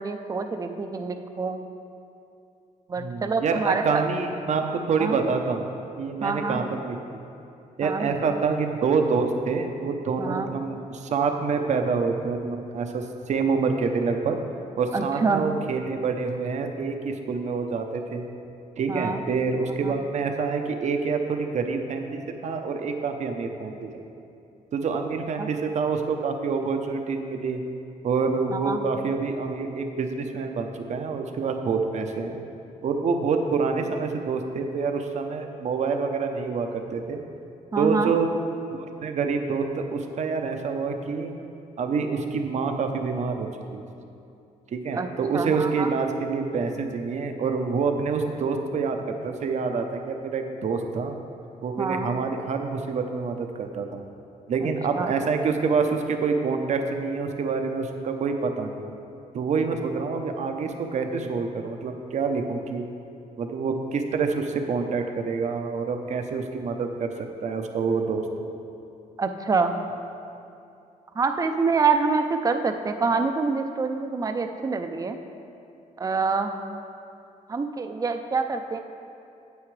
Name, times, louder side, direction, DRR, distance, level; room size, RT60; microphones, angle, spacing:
voice 1, 0.0-1.6 2.9-4.0 5.0-5.2 6.2-6.6 7.8-8.2 10.2-10.5 14.9-15.4 18.9-19.2 19.8-19.9 25.4-25.5 28.5-28.8 37.7-38.1 44.9-45.1 45.3-45.9 51.8-52.1 54.6-55.1 69.2-69.8 71.2-75.2 76.0-76.6 77.5-78.8, right 4 dB, 25° right, 7 dB, 0.5 m, -26 dB
voice 2, 3.0-5.7 6.0-7.0 7.8-14.4 14.8-18.3 18.8-24.0 24.7-27.6 28.0-32.4 32.8-37.2 37.8-38.3 38.7-41.4 41.8-43.8 44.7-51.2 51.6-54.0 54.5-58.9 59.3-62.9 63.4-68.3, right 5 dB, 55° right, 5 dB, 0.7 m, -27 dB
9.5 x 8.1 x 3.3 m, 2.6 s
cardioid pair, 105°, 14 cm